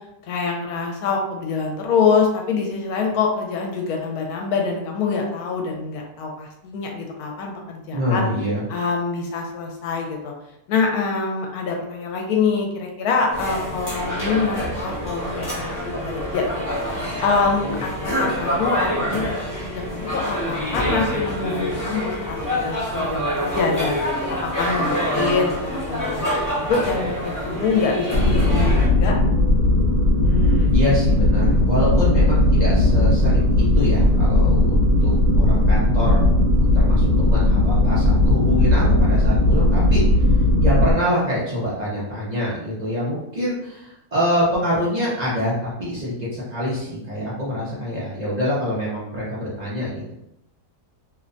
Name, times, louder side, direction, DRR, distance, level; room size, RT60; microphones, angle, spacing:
voice 1, 0.3-8.3 8.7-10.3 10.7-16.5 16.9-24.0 24.3-26.3 26.5-28.7 29.0-29.1, left 5 dB, 75° left, 1 dB, 1.0 m, -25 dB
voice 2, 7.9-8.7 17.6-17.8 30.2-36.2 36.5-40.0 40.6-50.2, equal, 70° right, -7 dB, 0.4 m, -25 dB
sound 1, 13.3-28.9, equal, 30° left, 0.3 m, -26 dB
sound 2, 28.1-40.9, left 1 dB, 90° right, 1.2 m, -17 dB
2.8 x 2.1 x 2.5 m, 0.83 s
omnidirectional pair, 1.7 m